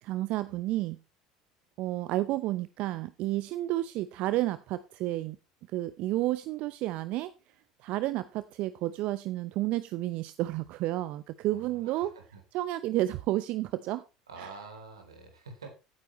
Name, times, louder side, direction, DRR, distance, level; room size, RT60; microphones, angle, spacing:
voice 1, 0.0-1.0 1.8-5.4 5.7-7.3 7.8-12.1 12.5-14.0 14.4-14.5, right 16 dB, 55° right, 14 dB, 0.7 m, -31 dB
voice 2, 11.5-12.4 14.3-15.7, right 4 dB, 85° right, 5 dB, 3.3 m, -47 dB
16.5 x 9.2 x 3.1 m, 0.29 s
figure-of-eight pair, 70°, 3 cm